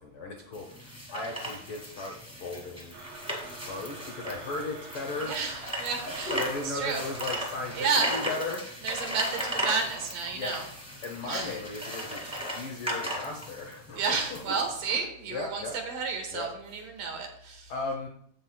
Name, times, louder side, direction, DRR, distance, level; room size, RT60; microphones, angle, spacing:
voice 1, 0.0-3.0 3.6-5.4 6.3-8.9 10.3-10.6 11.0-14.7 14.9-15.8 16.3-17.0 17.7-18.1, left 3 dB, 85° left, 1 dB, 1.1 m, -37 dB
sound 1, 0.5-15.0, right 1 dB, ahead, 1.4 m, -37 dB
Domestic sounds home sounds, 2.9-8.0, right 3 dB, 55° right, 3.3 m, -45 dB
voice 2, 5.2-6.4 6.6-7.0 7.7-8.1 8.8-10.6 11.2-11.6 12.2-12.4 13.9-17.7, right 5 dB, 75° right, 3 dB, 2.8 m, -31 dB
15.5 x 5.4 x 2.3 m, 0.67 s
omnidirectional pair, 3.9 m